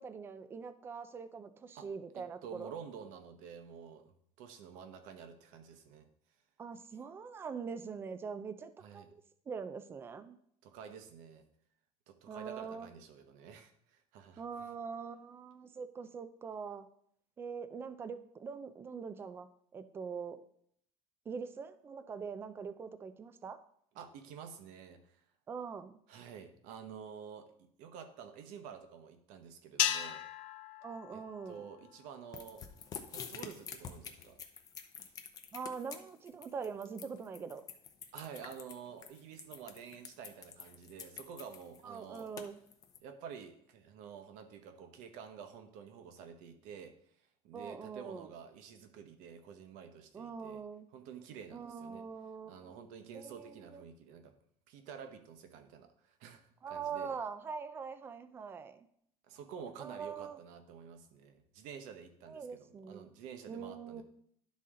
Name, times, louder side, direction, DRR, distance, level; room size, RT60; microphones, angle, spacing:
voice 1, 0.0-2.7 6.6-10.4 12.3-12.9 14.4-16.9 17.4-20.4 21.3-23.6 25.5-25.9 30.8-31.6 35.5-37.6 41.8-42.6 47.5-48.3 50.1-50.9 51.5-52.9 53.1-53.8 56.6-58.9 59.8-60.4 62.3-63.1 63.5-64.0, right 6 dB, 15° right, 11 dB, 0.4 m, -43 dB
voice 2, 2.1-6.1 8.8-9.1 10.6-11.4 12.1-14.4 23.9-25.2 26.1-30.2 31.1-32.6 33.1-34.4 38.1-42.3 43.0-46.9 47.4-50.6 50.9-52.0 52.5-54.3 54.7-57.2 59.3-64.0, right 7 dB, 65° right, 8 dB, 1.0 m, -50 dB
sound 1, 29.8-32.2, left 12 dB, 75° left, 0.6 m, -36 dB
sound 2, 32.3-43.0, left 7 dB, 25° left, 0.6 m, -47 dB
11.5 x 4.1 x 3.7 m, 0.67 s
cardioid pair, 175°, 14 cm